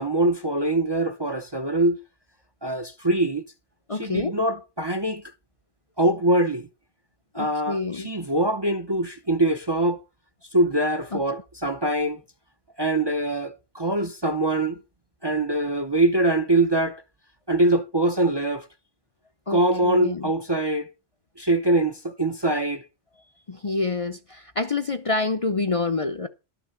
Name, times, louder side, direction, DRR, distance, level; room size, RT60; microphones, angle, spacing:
voice 1, 0.0-2.0 2.6-3.4 3.9-5.2 6.0-6.7 7.3-10.0 10.5-12.2 12.8-14.8 15.2-17.0 17.5-18.7 19.5-20.9 21.4-22.8, right 1 dB, 25° right, 0.7 m, -23 dB
voice 2, 3.9-4.3 7.3-8.1 11.1-11.2 19.5-20.3 23.5-26.3, left 3 dB, 35° left, 0.7 m, -27 dB
12.0 x 5.9 x 7.1 m
omnidirectional pair, 1.2 m